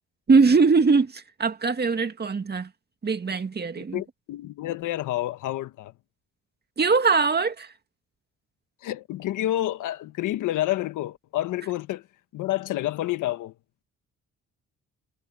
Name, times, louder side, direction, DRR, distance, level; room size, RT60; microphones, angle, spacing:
voice 1, 0.3-2.7 3.0-4.0 6.8-7.7, right 4 dB, 35° right, 2.1 m, -21 dB
voice 2, 3.8-5.9 8.8-12.0 12.3-13.5, left 14 dB, 90° left, 1.5 m, -29 dB
cardioid pair, 90°, 30 cm